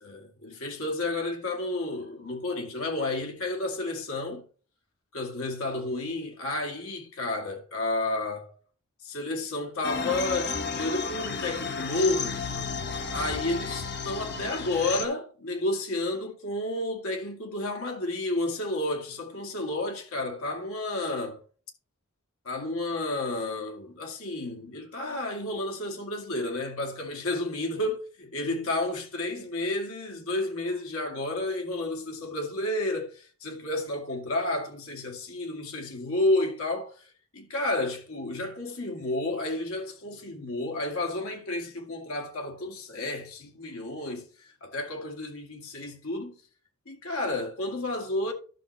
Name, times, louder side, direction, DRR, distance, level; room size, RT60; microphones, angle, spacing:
voice 1, 0.0-4.4 5.1-8.5 9.0-12.4 13.1-21.4 22.4-46.4 46.9-48.3, left 2 dB, 65° left, 2.1 m, -31 dB
sound 1, 9.8-15.1, left 5 dB, 50° left, 1.0 m, -32 dB
11.5 x 6.3 x 3.2 m
head